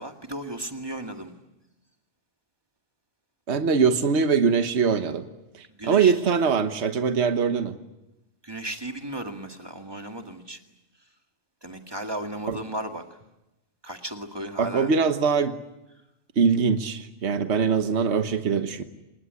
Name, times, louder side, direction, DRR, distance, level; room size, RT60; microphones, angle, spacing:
voice 1, 0.0-1.3 5.7-6.1 8.4-10.6 11.6-13.0 13.8-14.9, right 1 dB, 20° right, 4 dB, 2.0 m, -35 dB
voice 2, 3.5-5.3 5.6-7.8 12.5-12.6 14.6-15.6 16.4-18.8, right 5 dB, 65° right, 8 dB, 1.5 m, -22 dB
27.5 x 20.0 x 9.7 m, 0.98 s
omnidirectional pair, 1.2 m